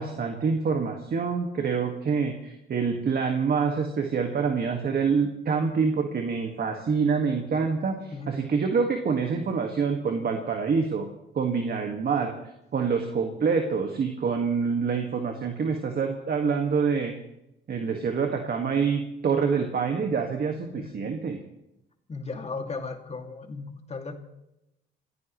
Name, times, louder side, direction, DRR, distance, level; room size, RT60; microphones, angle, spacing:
voice 1, 0.0-11.1 11.3-12.3 12.7-17.1 17.7-21.4, right 5 dB, 50° right, 3 dB, 1.9 m, -26 dB
voice 2, 8.1-8.4 20.7-21.1 22.1-24.1, left 4 dB, 30° left, 4 dB, 2.5 m, -36 dB
27.0 x 15.5 x 3.2 m, 0.87 s
cardioid pair, 90°, 20 cm